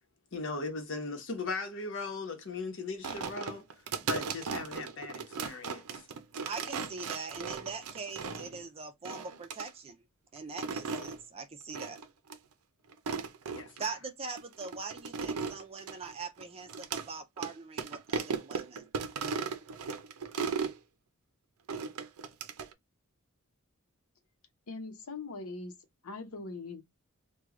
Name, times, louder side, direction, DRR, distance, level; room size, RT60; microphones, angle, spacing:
voice 1, 0.3-3.6 4.0-6.0 13.5-13.8, left 3 dB, 60° left, 1.0 m, -38 dB
sound 1, 3.0-8.6 9.0-9.7 10.4-11.2 11.7-12.0 12.3-12.4 12.9-13.9 14.4-17.1 17.4-17.5 17.8-20.8 21.7-22.7, right 5 dB, 90° right, 0.6 m, -36 dB
voice 2, 6.4-10.0 10.3-12.0 13.8-18.9, right 4 dB, 25° right, 0.5 m, -42 dB
voice 3, 24.7-25.8 26.0-26.8, left 3 dB, 85° left, 0.8 m, -41 dB
3.0 x 2.3 x 3.6 m
head